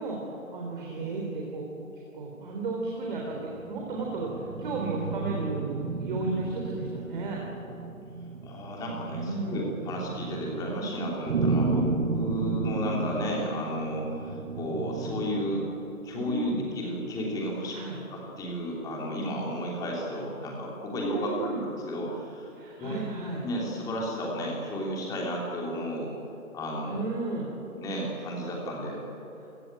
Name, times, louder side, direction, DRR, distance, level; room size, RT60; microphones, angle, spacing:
voice 1, 0.0-1.7 2.1-3.4 3.6-7.4 9.1-9.6 16.1-16.6 17.7-18.0 21.0-21.6 22.5-23.4 26.9-27.5, right 3 dB, 35° right, -1 dB, 3.8 m, -33 dB
sound 1, 3.3-15.9, right 3 dB, 55° right, 1.5 m, -33 dB
voice 2, 8.4-15.7 16.0-17.8 18.1-21.5 21.9-22.5 22.8-23.0 23.4-26.1 26.5-27.0 27.8-29.0, equal, 10° left, -2 dB, 3.1 m, -33 dB
28.0 x 17.5 x 9.0 m, 2.9 s
figure-of-eight pair, 155°, 43 cm